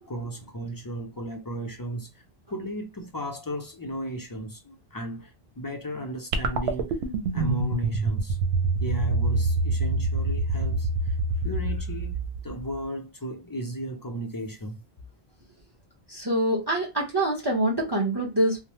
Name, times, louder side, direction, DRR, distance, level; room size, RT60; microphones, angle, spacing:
voice 1, 0.1-2.2 2.5-7.0 7.3-8.4 8.8-11.2 11.4-12.2 12.4-14.8, right 1 dB, 35° left, 0.3 m, -35 dB
sound 1, 6.3-12.8, right 2 dB, 80° right, 0.9 m, -26 dB
voice 2, 16.1-18.6, right 1 dB, 25° right, 0.9 m, -25 dB
3.0 x 2.1 x 3.0 m
omnidirectional pair, 1.1 m